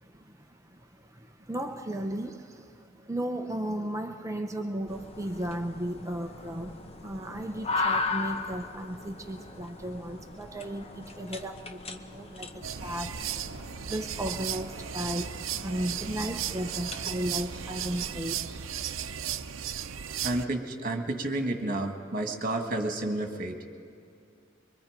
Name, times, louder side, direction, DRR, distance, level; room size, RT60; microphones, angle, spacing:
voice 1, 0.0-13.3 13.9-18.5, right 1 dB, 15° right, 4 dB, 0.8 m, -35 dB
sound 1, 4.9-18.2, left 3 dB, 30° left, 1.0 m, -38 dB
sound 2, 12.6-20.5, right 9 dB, 90° right, 0.7 m, -35 dB
voice 2, 20.2-23.6, right 2 dB, 45° right, 4 dB, 1.9 m, -30 dB
23.5 x 23.5 x 5.2 m, 2.3 s
head